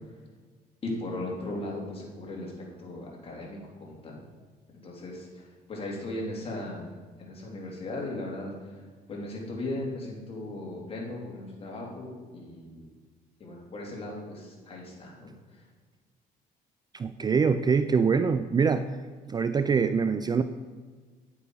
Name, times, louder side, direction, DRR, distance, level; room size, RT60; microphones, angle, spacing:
voice 1, 0.8-2.5 2.8-4.2 4.8-6.9 7.2-8.5 9.1-12.8 13.4-15.3, left 2 dB, 35° left, -2 dB, 2.9 m, -37 dB
voice 2, 16.9-18.9 19.3-20.4, right 5 dB, 25° right, 11 dB, 0.4 m, -24 dB
9.9 x 8.4 x 4.7 m, 1.5 s
cardioid pair, 110°, 17 cm